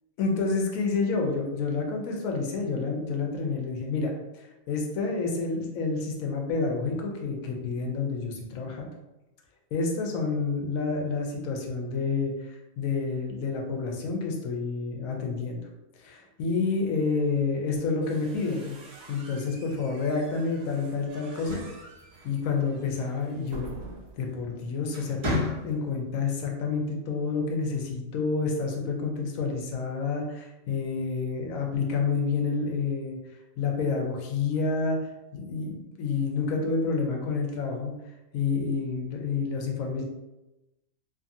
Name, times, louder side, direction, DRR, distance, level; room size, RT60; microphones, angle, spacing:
voice 1, 0.2-8.9 9.7-15.6 16.0-18.8 19.1-21.6 22.2-23.7 24.2-33.2 33.6-35.0 35.3-37.9 38.3-40.0, left 4 dB, 80° left, 1 dB, 1.0 m, -29 dB
sound 1, 17.7-24.3, right 3 dB, 85° right, 1.1 m, -48 dB
sound 2, 21.2-22.8 24.2-24.5 24.9-26.1, left 1 dB, 40° right, 0.4 m, -33 dB
2.6 x 2.5 x 2.6 m, 0.99 s
omnidirectional pair, 1.4 m